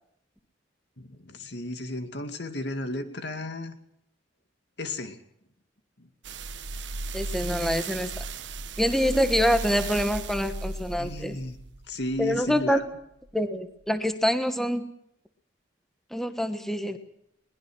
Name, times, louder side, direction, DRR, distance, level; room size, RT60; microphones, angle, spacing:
voice 1, 1.0-3.8 4.8-5.2 6.0-6.1 11.0-11.6 11.9-12.8, left 1 dB, 65° left, 7 dB, 2.4 m, -34 dB
sound 1, 6.2-12.7 13.3-13.4, right 3 dB, 70° right, 1.1 m, -35 dB
voice 2, 7.1-8.2 8.8-11.4 12.2-12.8 13.3-14.8 16.1-17.0, equal, ahead, 8 dB, 1.3 m, -26 dB
22.0 x 20.0 x 6.2 m, 0.75 s
head